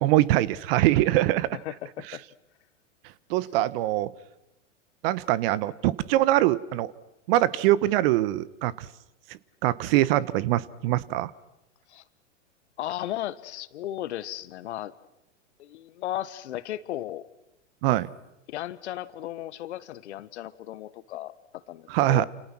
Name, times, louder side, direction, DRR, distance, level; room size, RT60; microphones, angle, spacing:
voice 1, 0.0-1.6 3.3-4.1 5.0-6.9 7.3-8.9 9.6-11.3 17.8-18.1 21.9-22.2, right 15 dB, 50° right, 20 dB, 1.2 m, -23 dB
voice 2, 1.5-2.2 11.9-12.0 12.8-14.9 15.6-17.3 18.5-22.2, left 13 dB, 65° left, 15 dB, 1.5 m, -35 dB
29.0 x 28.5 x 6.2 m, 0.90 s
hypercardioid pair, 110°, 37 cm